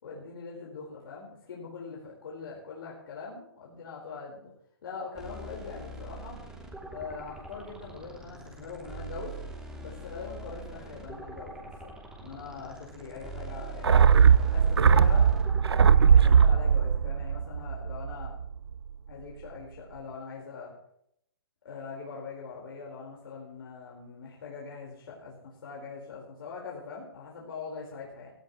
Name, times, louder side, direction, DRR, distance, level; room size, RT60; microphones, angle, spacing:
voice 1, 0.0-4.5 4.8-6.4 6.9-9.3 9.8-14.1 14.5-15.3 16.1-18.3 19.1-20.7 21.6-28.3, left 5 dB, 65° left, -3 dB, 4.6 m, -42 dB
sound 1, 5.2-16.5, right 2 dB, 5° right, 2.9 m, -43 dB
sound 2, 13.8-18.4 18.7-18.8, right 7 dB, 90° right, 0.7 m, -20 dB
17.0 x 14.0 x 3.2 m, 0.72 s
hypercardioid pair, 145°, 13 cm